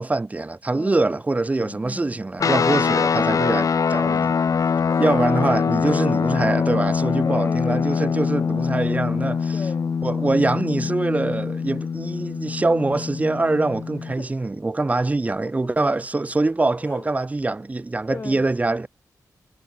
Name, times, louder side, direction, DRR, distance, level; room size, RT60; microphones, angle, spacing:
voice 1, 0.0-4.3 5.0-9.6 10.0-18.9, right 2 dB, 20° right, 2.9 m, -24 dB
voice 2, 0.7-1.2 1.6-2.3 3.3-3.7 4.5-5.3 6.0-6.2 7.2-8.6 9.5-9.9 10.7-11.1 14.2-14.3 14.9-15.0 16.8-17.1 18.1-18.5, left 4 dB, 35° left, 7.8 m, -37 dB
sound 1, 2.4-14.1, left 6 dB, 55° left, 4.8 m, -23 dB
wide cardioid pair, 130°, 7 cm